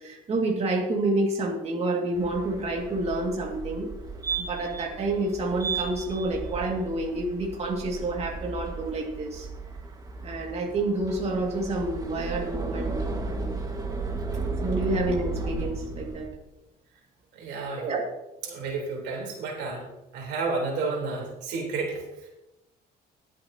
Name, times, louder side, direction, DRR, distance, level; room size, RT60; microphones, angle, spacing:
voice 1, 0.0-3.9 4.4-9.5 10.2-12.9 13.2-13.5 14.3-16.3 17.7-18.0, right 2 dB, 40° right, -1 dB, 2.3 m, -29 dB
sound 1, 2.1-16.3, right 4 dB, 20° right, 1.7 m, -34 dB
voice 2, 17.3-17.9 18.4-19.8 20.1-22.3, right 3 dB, 85° right, -1 dB, 3.8 m, -31 dB
20.5 x 7.7 x 2.9 m, 0.95 s
cardioid pair, 110°, 17 cm